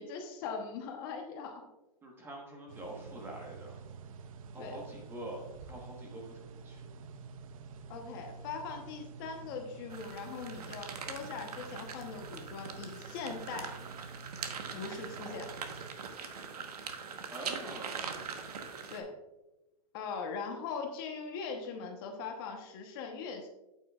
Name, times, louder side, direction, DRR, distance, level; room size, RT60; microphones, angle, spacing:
voice 1, 0.0-1.6 4.6-4.8 7.9-13.8 14.7-15.5 18.9-19.1 19.9-23.5, left 5 dB, 35° left, 3 dB, 1.0 m, -41 dB
voice 2, 2.0-3.8 4.5-7.0 17.3-18.3, right 1 dB, 10° right, 0 dB, 1.2 m, -45 dB
sound 1, 2.7-15.9, right 4 dB, 65° right, 0.7 m, -49 dB
sound 2, 9.9-19.0, right 6 dB, 85° right, 1.2 m, -42 dB
9.0 x 8.4 x 2.4 m, 0.99 s
hypercardioid pair, 160°, 19 cm